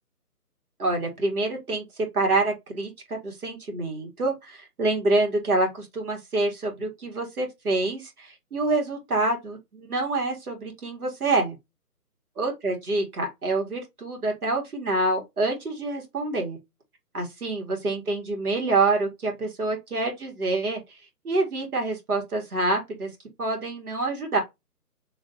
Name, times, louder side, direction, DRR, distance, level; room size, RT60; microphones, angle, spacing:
voice 1, 0.8-1.8 2.1-11.6 12.4-16.6 17.1-20.8 21.2-23.1 23.4-24.4, right 2 dB, 65° right, 1.8 m, -26 dB
3.1 x 2.6 x 3.9 m
figure-of-eight pair, 155°, 47 cm